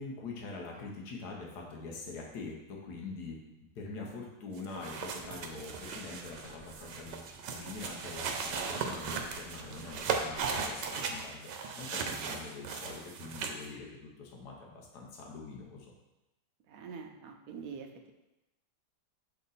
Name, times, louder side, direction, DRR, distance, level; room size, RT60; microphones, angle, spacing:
voice 1, 0.0-3.4 3.7-15.9, left 3 dB, 70° left, -1 dB, 1.5 m, -44 dB
sound 1, 4.5-11.0, right 1 dB, 30° right, 1.7 m, -57 dB
sound 2, 4.6-13.7, right 5 dB, 80° right, 1.3 m, -37 dB
voice 2, 16.7-18.1, right 6 dB, 65° right, 5 dB, 1.0 m, -45 dB
6.7 x 3.8 x 4.0 m, 0.97 s
omnidirectional pair, 1.8 m